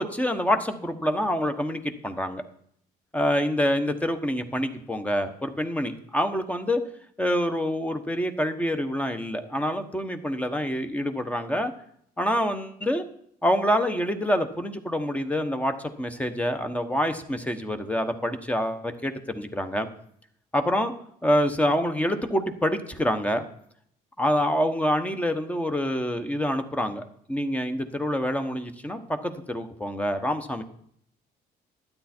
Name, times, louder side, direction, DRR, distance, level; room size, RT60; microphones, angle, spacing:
voice 1, 0.0-2.4 3.1-6.8 7.2-11.7 12.2-13.1 13.4-19.9 20.5-20.9 21.2-23.4 24.2-30.6, equal, 10° left, 8 dB, 1.2 m, -26 dB
12.0 x 9.4 x 4.5 m, 0.66 s
cardioid pair, 110°, 17 cm